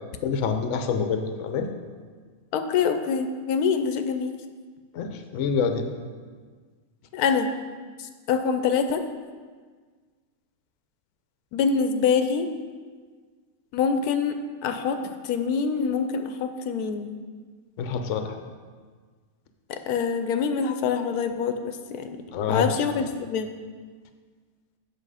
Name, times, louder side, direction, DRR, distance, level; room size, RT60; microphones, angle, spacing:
voice 1, 0.2-1.7 4.9-5.9 17.8-18.4 22.3-22.7, left 6 dB, 60° left, 6 dB, 1.0 m, -26 dB
voice 2, 2.5-4.3 7.1-7.5 8.3-9.0 11.5-12.5 13.7-15.0 15.2-17.1 19.7-22.1 22.5-23.5, left 6 dB, 90° left, 8 dB, 1.1 m, -25 dB
7.7 x 6.5 x 4.8 m, 1.5 s
omnidirectional pair, 1.6 m